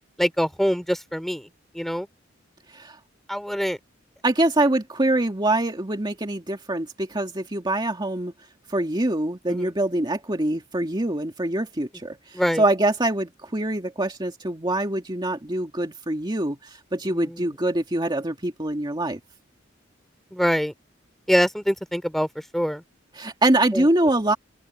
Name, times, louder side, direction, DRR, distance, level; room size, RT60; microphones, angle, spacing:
voice 1, 0.2-1.5 1.7-2.1 3.3-3.8 9.5-9.7 12.3-12.6 17.1-17.4 20.3-20.7 21.3-22.3 22.5-22.8 23.7-23.8, equal, ahead, 3.0 m, -24 dB
voice 2, 4.2-8.3 8.7-19.2 23.1-24.3, right 1 dB, 25° right, 2.3 m, -24 dB
open air
head